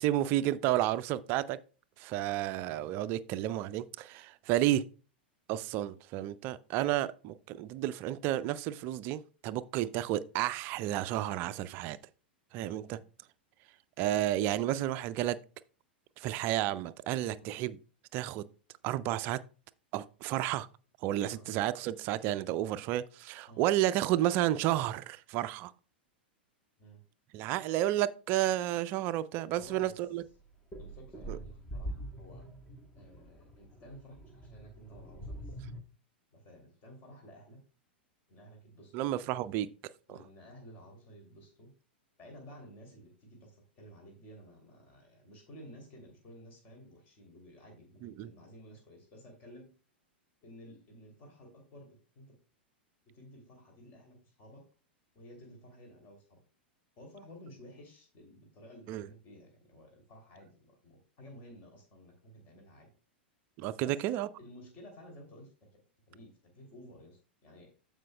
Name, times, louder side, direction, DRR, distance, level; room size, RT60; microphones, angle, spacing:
voice 1, 0.0-1.6 2.0-4.8 5.5-12.0 12.5-13.0 14.0-15.4 16.2-17.8 18.1-18.4 18.8-19.4 19.9-20.7 21.0-25.7 27.3-30.2 31.3-31.4 38.9-39.7 40.1-40.2 48.0-48.3 58.9-59.1 63.6-64.3, right 13 dB, 35° right, 0.5 m, -31 dB
voice 2, 12.7-13.0 17.4-17.5 21.3-21.5 23.5-23.6 26.8-27.0 29.5-29.9 30.8-32.5 32.9-35.6 36.3-37.6 38.3-39.1 40.1-41.7 42.2-49.7 50.4-52.4 53.1-54.7 55.1-56.4 57.0-62.9 63.8-64.0 64.4-65.8 66.1-67.7, equal, 35° left, 2.8 m, -53 dB
sound 1, 30.4-35.8, right 1 dB, 15° left, 1.4 m, -44 dB
15.0 x 5.0 x 2.2 m
figure-of-eight pair, 95°, 6 cm